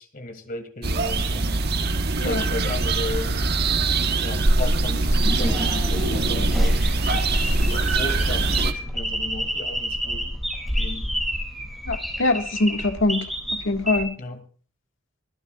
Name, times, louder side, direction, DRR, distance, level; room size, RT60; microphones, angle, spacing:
voice 1, 0.0-1.6 2.2-3.3 4.2-10.3 10.7-11.1 14.2-14.4, left 2 dB, 45° left, 2.6 m, -35 dB
sound 1, 0.8-8.7, right 2 dB, 55° right, 1.2 m, -22 dB
voice 2, 2.2-2.5 11.9-14.2, left 2 dB, 80° left, 1.8 m, -24 dB
sound 2, 5.2-14.0, equal, ahead, 6.6 m, -29 dB
25.0 x 12.0 x 2.4 m
head